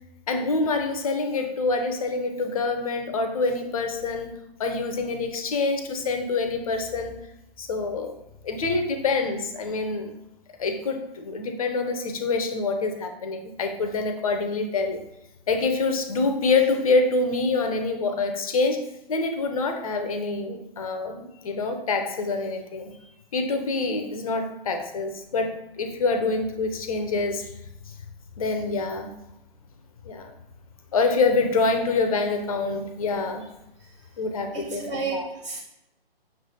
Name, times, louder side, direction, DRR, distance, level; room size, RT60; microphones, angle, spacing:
voice 1, 0.3-7.2 7.6-8.1 8.4-10.1 10.6-15.0 15.5-22.9 23.3-27.5 27.9-28.0 28.4-29.1 30.0-30.3 30.9-33.5 34.2-35.3, left 3 dB, 35° left, 6 dB, 0.6 m, -26 dB
voice 2, 34.5-35.6, right 4 dB, 30° right, -3 dB, 0.8 m, -32 dB
5.9 x 3.2 x 2.7 m, 0.88 s
figure-of-eight pair, 130°, 30 cm